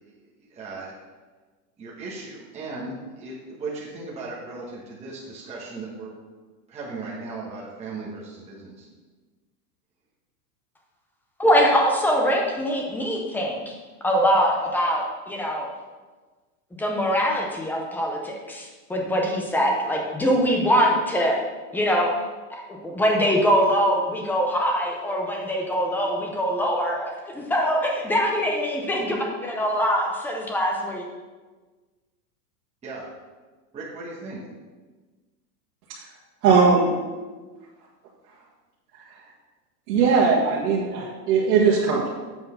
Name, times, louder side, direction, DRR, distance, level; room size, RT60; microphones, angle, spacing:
voice 1, 0.5-0.9 1.8-6.1 6.7-8.9 32.8-33.0 33.7-34.4, right 3 dB, 15° right, -6 dB, 1.1 m, -37 dB
voice 2, 11.4-13.8 14.0-15.7 16.8-21.4 21.7-22.1 22.7-31.0, equal, 5° left, 0 dB, 0.5 m, -23 dB
voice 3, 36.4-37.0 39.9-42.2, right 5 dB, 65° right, -5 dB, 1.6 m, -19 dB
7.8 x 4.3 x 5.6 m, 1.3 s
supercardioid pair, 150°, 49 cm